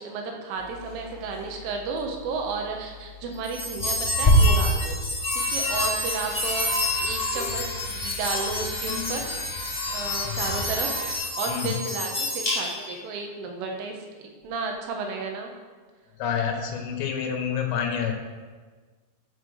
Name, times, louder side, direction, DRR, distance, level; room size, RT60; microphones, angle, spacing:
voice 1, 0.0-5.0 5.3-9.3 9.9-15.5, right 4 dB, 75° right, 2 dB, 3.7 m, -33 dB
sound 1, 0.6-10.8, left 4 dB, 35° right, 1.6 m, -45 dB
sound 2, 3.4-13.0, left 1 dB, 15° left, 2.1 m, -26 dB
sound 3, 5.4-11.1, left 2 dB, 55° left, 2.1 m, -41 dB
voice 2, 16.2-18.1, left 7 dB, 80° left, 2 dB, 4.0 m, -28 dB
12.5 x 5.9 x 6.5 m, 1.4 s
omnidirectional pair, 5.9 m